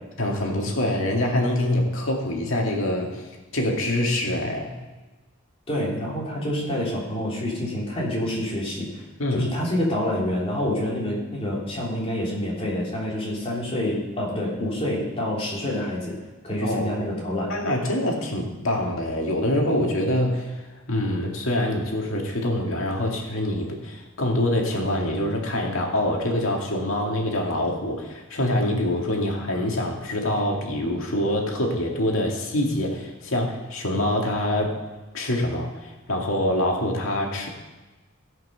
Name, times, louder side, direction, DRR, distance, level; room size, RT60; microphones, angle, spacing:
voice 1, 0.2-4.8 9.2-9.5 16.6-17.1 17.5-34.8 35.1-37.5, left 1 dB, 70° left, 0 dB, 2.2 m, -25 dB
voice 2, 5.7-9.0 9.3-16.2 16.4-17.5, left 1 dB, 25° left, -4 dB, 3.3 m, -27 dB
16.5 x 6.0 x 5.7 m, 1.2 s
head